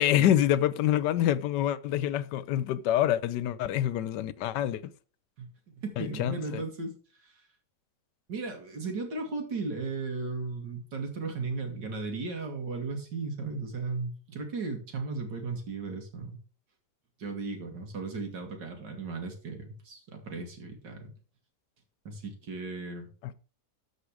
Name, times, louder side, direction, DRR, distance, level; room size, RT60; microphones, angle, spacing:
voice 1, 0.0-4.8 6.0-6.6 23.2-23.3, left 12 dB, 80° left, 1.2 m, -26 dB
voice 2, 5.4-6.9 7.2-7.4 8.3-16.4 17.2-21.1 22.0-23.1, right 3 dB, 85° right, 2.7 m, -36 dB
13.0 x 5.0 x 4.9 m
omnidirectional pair, 1.9 m